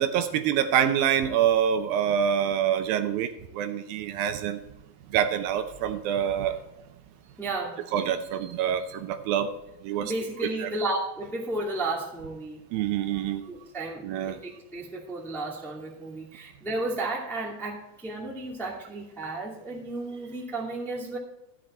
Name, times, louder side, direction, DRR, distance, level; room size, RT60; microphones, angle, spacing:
voice 1, 0.0-4.6 5.1-6.6 7.9-9.5 9.8-10.1 10.6-10.7 12.7-13.5 14.0-14.4, right 9 dB, 80° right, 8 dB, 2.5 m, -26 dB
voice 2, 7.4-7.8 10.0-12.6 13.5-21.2, right 2 dB, ahead, -3 dB, 1.2 m, -33 dB
13.0 x 7.6 x 4.4 m, 0.88 s
omnidirectional pair, 4.3 m